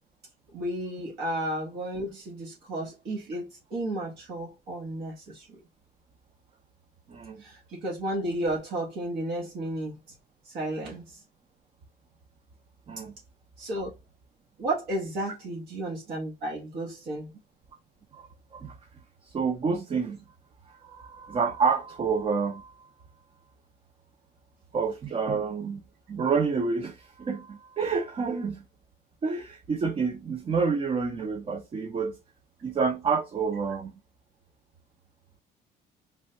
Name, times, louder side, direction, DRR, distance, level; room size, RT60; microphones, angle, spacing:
voice 1, 0.5-5.6 7.4-9.9 10.4-11.2 13.6-13.9 14.6-17.3, right 1 dB, 75° right, 1.1 m, -33 dB
voice 2, 7.1-7.4 12.9-13.2 18.1-18.8 19.2-20.2 20.7-22.7 24.7-25.8 26.1-28.7 29.2-32.2 32.6-33.9, right 5 dB, 35° right, 0.5 m, -28 dB
3.2 x 2.2 x 2.6 m
cardioid pair, 110°, 17 cm